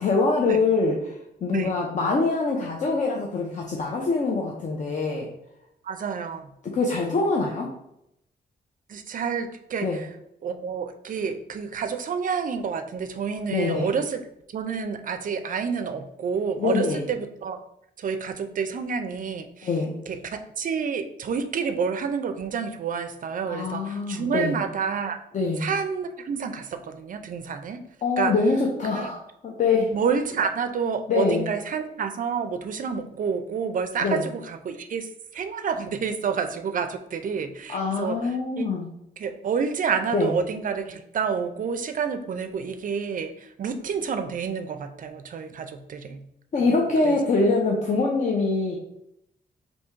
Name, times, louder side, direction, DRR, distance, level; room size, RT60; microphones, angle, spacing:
voice 1, 0.0-5.3 6.7-7.7 9.8-10.0 13.5-14.0 16.6-17.0 19.6-19.9 23.5-24.5 25.3-25.7 28.0-30.0 31.1-31.5 34.0-34.2 37.7-38.9 40.1-40.3 46.5-48.8, left 3 dB, 45° left, -1 dB, 0.5 m, -24 dB
voice 2, 5.8-6.5 8.9-10.1 10.4-14.2 14.5-17.6 18.0-19.7 20.1-25.2 25.6-27.8 28.2-28.3 28.9-29.1 29.9-35.1 35.3-38.2 38.6-38.7 39.2-46.2 47.0-47.1, right 6 dB, 50° right, 8 dB, 0.4 m, -29 dB
3.5 x 2.7 x 4.4 m, 0.80 s
wide cardioid pair, 150°, 18 cm